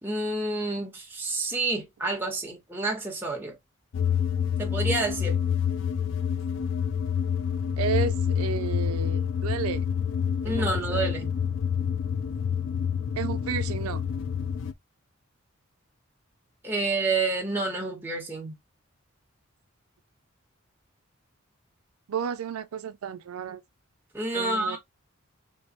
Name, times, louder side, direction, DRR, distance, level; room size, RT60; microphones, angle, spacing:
voice 1, 0.0-3.6 4.6-5.4 10.4-11.3 16.6-18.5 24.1-24.8, right 3 dB, 10° right, 1.2 m, -29 dB
sound 1, 3.9-14.7, left 7 dB, 65° left, 0.3 m, -27 dB
voice 2, 7.8-9.8 10.6-11.1 13.2-14.0 22.1-23.6 24.3-24.8, right 7 dB, 90° right, 0.4 m, -32 dB
3.3 x 3.1 x 2.9 m
head